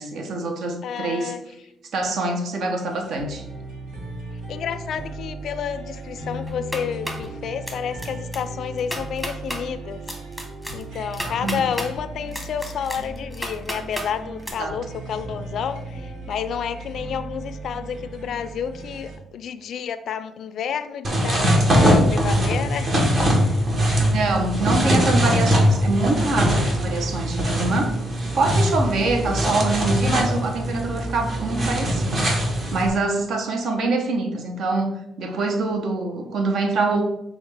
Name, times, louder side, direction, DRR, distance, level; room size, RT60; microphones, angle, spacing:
voice 1, 0.0-1.3 1.9-3.4 11.3-11.6 14.6-14.8 24.0-27.9 28.3-37.0, right 3 dB, 65° right, 4 dB, 0.8 m, -25 dB
voice 2, 0.8-1.4 4.5-10.0 10.7-22.9 23.2-23.5, left 7 dB, 70° left, 12 dB, 0.3 m, -30 dB
sound 1, 2.8-19.2, right 2 dB, 85° right, 1.4 m, -36 dB
sound 2, 6.5-7.3 7.7-8.1 8.3-8.4 8.8-9.6 10.1-11.9 12.3-14.1 14.4-14.5, equal, ahead, 1.0 m, -32 dB
sound 3, 21.0-32.9, equal, 45° right, 1.4 m, -21 dB
6.3 x 2.4 x 3.4 m, 0.85 s
cardioid pair, 90°, 0 cm